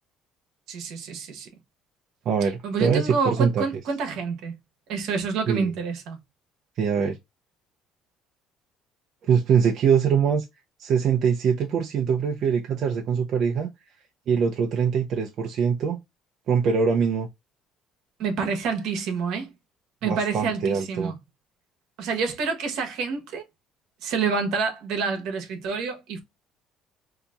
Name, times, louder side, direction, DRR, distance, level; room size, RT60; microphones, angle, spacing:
voice 1, 0.7-1.5 2.4-4.5 4.9-6.2 18.2-19.5 20.0-21.1 22.0-23.4 24.0-26.2, right 5 dB, 75° right, 1.1 m, -28 dB
voice 2, 2.3-3.6 5.5-5.7 6.8-7.2 9.2-10.4 10.8-13.7 14.3-16.0 16.5-17.3 20.0-21.1, right 6 dB, 55° right, 0.6 m, -23 dB
4.0 x 2.8 x 2.2 m
cardioid pair, 120°, 0 cm